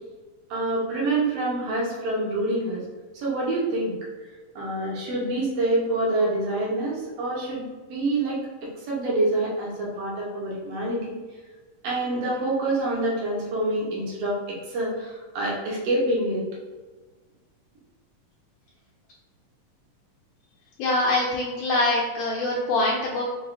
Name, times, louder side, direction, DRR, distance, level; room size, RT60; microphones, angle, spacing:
voice 1, 0.5-2.8 3.1-3.9 4.5-7.6 7.9-11.1 11.8-16.4, right 2 dB, 65° right, -4 dB, 1.6 m, -26 dB
voice 2, 20.8-23.2, left 2 dB, 80° left, -3 dB, 1.6 m, -24 dB
6.0 x 2.4 x 2.5 m, 1.3 s
omnidirectional pair, 3.7 m